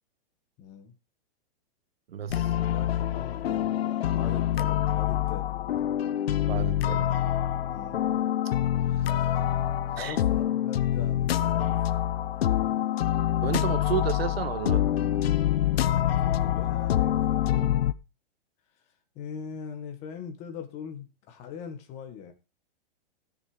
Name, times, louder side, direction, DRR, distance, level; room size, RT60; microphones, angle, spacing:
voice 1, 0.6-0.9 2.5-5.5 7.7-8.0 9.9-11.8 16.2-17.9 19.1-22.3, left 7 dB, 20° left, 1.6 m, -41 dB
voice 2, 2.1-2.6 6.5-7.1 9.0-9.3 10.0-10.2 13.4-14.9 17.5-17.8, right 10 dB, 80° right, 1.4 m, -32 dB
sound 1, 2.3-17.9, left 12 dB, 80° left, 0.9 m, -26 dB
13.5 x 6.8 x 5.0 m
supercardioid pair, 175°, 30 cm